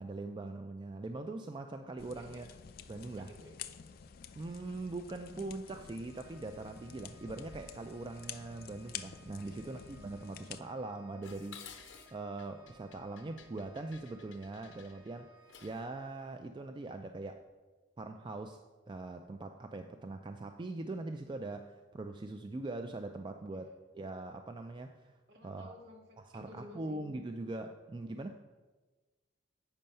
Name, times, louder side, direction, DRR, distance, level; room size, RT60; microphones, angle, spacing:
voice 1, 0.0-2.5 2.9-3.3 4.4-15.3 15.6-17.4 18.0-18.6 18.9-25.2 25.4-25.8 26.3-28.3, right 2 dB, 25° right, 6 dB, 0.3 m, -42 dB
sound 1, 2.0-10.6, left 8 dB, 50° left, 0.4 m, -49 dB
voice 2, 2.9-3.6 9.4-10.2 23.5-23.7 25.3-27.0, left 1 dB, 60° right, 0 dB, 2.0 m, -55 dB
Organ, 6.0-16.9, right 1 dB, 85° right, 2.6 m, -63 dB
Dishes pots and pans, 11.2-15.9, left 7 dB, 85° left, 1.0 m, -54 dB
8.9 x 5.4 x 5.4 m, 1.3 s
head